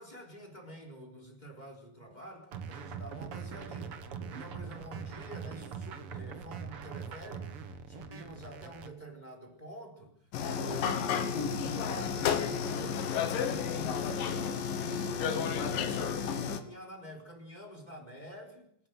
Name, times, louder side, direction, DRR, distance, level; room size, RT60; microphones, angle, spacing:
voice 1, 0.0-4.0 4.3-10.1 10.4-14.2 14.8-18.7, right 1 dB, 10° left, 3 dB, 3.7 m, -48 dB
sound 1, 2.5-8.9, right 6 dB, 55° right, 1.7 m, -42 dB
sound 2, 10.3-16.6, left 7 dB, 65° left, 3.1 m, -32 dB
27.5 x 12.0 x 7.8 m, 0.70 s
omnidirectional pair, 4.4 m